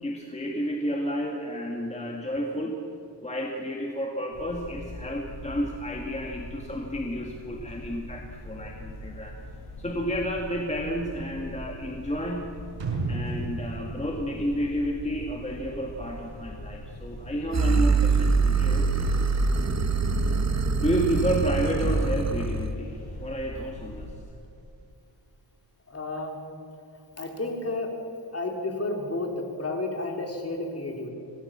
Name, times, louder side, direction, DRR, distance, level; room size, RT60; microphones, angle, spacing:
voice 1, 0.0-2.8 3.2-9.3 9.8-12.5 13.1-18.9 20.8-24.1, equal, 15° left, 0 dB, 2.0 m, -31 dB
sound 1, 4.3-24.1, left 1 dB, 60° left, 6.2 m, -42 dB
sound 2, 12.8-15.6 15.9-16.0, right 3 dB, 80° right, 5.8 m, -33 dB
sound 3, 17.5-22.7, right 4 dB, 35° right, 1.3 m, -24 dB
voice 2, 25.9-26.4 27.2-27.9 28.3-31.1, left 2 dB, 35° left, 2 dB, 3.8 m, -31 dB
26.5 x 19.0 x 7.5 m, 2.7 s
wide cardioid pair, 150°, 44 cm